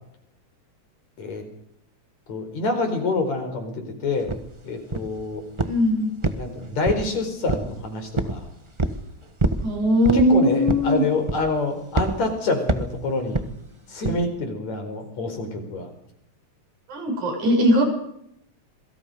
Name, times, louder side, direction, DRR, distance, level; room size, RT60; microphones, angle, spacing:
voice 1, 2.3-4.3 4.6-5.4 6.3-8.5 10.1-13.4 13.9-15.9, left 3 dB, 65° left, 6 dB, 6.1 m, -27 dB
sound 1, 4.3-4.4 4.9-5.2 5.6-5.9 6.2-7.1 7.5-7.8 8.2-8.4 8.8-9.0 9.4-9.7 10.0-10.3 10.7-10.9 11.3-11.6 12.0-12.2 12.7-12.9 13.3-13.5 14.0-14.2, right 2 dB, 30° right, 0.5 m, -24 dB
voice 2, 5.6-6.1 9.6-11.0 16.9-17.8, equal, 85° right, 3 dB, 8.2 m, -19 dB
27.0 x 23.5 x 5.3 m, 0.75 s
omnidirectional pair, 3.3 m